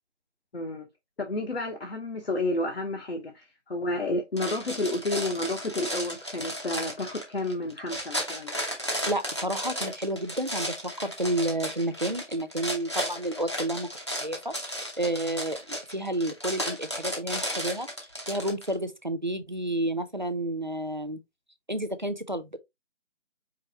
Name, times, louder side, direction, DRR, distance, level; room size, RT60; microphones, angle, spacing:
voice 1, 0.5-0.9 1.2-8.5, left 2 dB, 55° left, 1.0 m, -31 dB
sound 1, 4.4-18.7, equal, 25° left, 0.8 m, -34 dB
voice 2, 9.1-13.9 14.2-17.9 18.3-21.2 21.7-22.6, right 1 dB, 40° right, 0.4 m, -30 dB
4.7 x 3.2 x 2.8 m
figure-of-eight pair, 170°, 36 cm